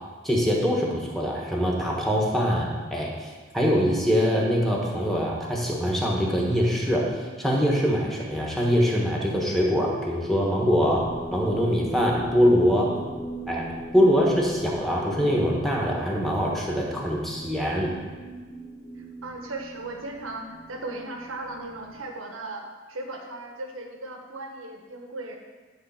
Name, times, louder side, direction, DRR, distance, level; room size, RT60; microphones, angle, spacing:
voice 1, 0.2-3.3 3.5-7.0 7.4-11.0 11.3-13.0 13.5-13.7 13.9-17.9, equal, ahead, -3 dB, 1.3 m, -23 dB
sound 1, 10.9-22.0, right 1 dB, 15° left, 1.5 m, -40 dB
voice 2, 18.9-25.4, right 2 dB, 85° right, 2 dB, 1.2 m, -37 dB
10.5 x 3.9 x 5.8 m, 1.4 s
head